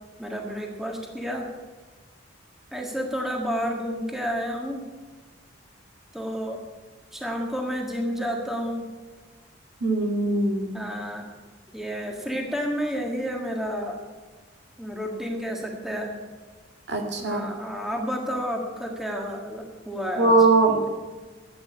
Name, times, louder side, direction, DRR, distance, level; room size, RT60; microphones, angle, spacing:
voice 1, 0.2-1.5 2.7-4.8 6.1-6.6 7.1-8.8 10.7-11.2 11.7-14.0 14.8-16.2 17.2-20.4, equal, ahead, 1 dB, 1.6 m, -30 dB
voice 2, 9.8-10.8 16.9-17.4 20.2-20.8, right 3 dB, 65° right, 3 dB, 2.0 m, -21 dB
12.5 x 8.9 x 8.4 m, 1.4 s
head